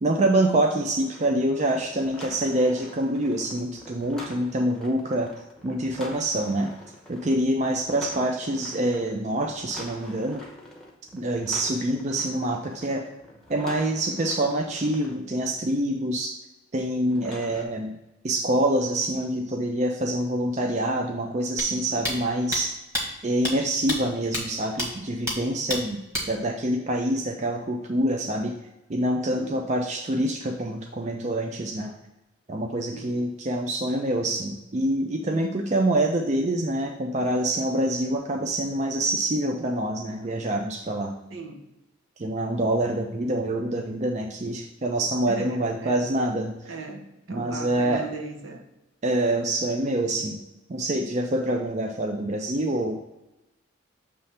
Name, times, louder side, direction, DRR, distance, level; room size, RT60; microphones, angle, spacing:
voice 1, 0.0-5.3 5.6-6.7 7.1-10.4 11.1-13.0 13.5-16.3 16.7-18.0 18.2-22.7 23.2-26.0 26.3-28.6 28.9-31.9 32.5-41.1 42.2-46.7 47.3-48.0 49.0-50.4 50.7-53.0, right 1 dB, 35° right, 3 dB, 0.4 m, -26 dB
sound 1, 0.7-15.1 17.1-17.6, equal, ahead, 0.8 m, -45 dB
sound 2, 21.6-21.7 22.0-22.2 22.5-22.6 22.9-23.0 23.4-23.5 23.9-24.0 24.3-24.4 24.8-24.9 25.3-25.4 25.7-25.8 26.1-26.3, left 1 dB, 15° right, 1.4 m, -27 dB
voice 2, 21.7-22.1 29.3-29.6 32.9-33.2 41.3-41.7 45.3-46.1 46.6-48.7, right 3 dB, 70° right, 4 dB, 0.9 m, -38 dB
6.9 x 3.2 x 5.6 m, 0.96 s
head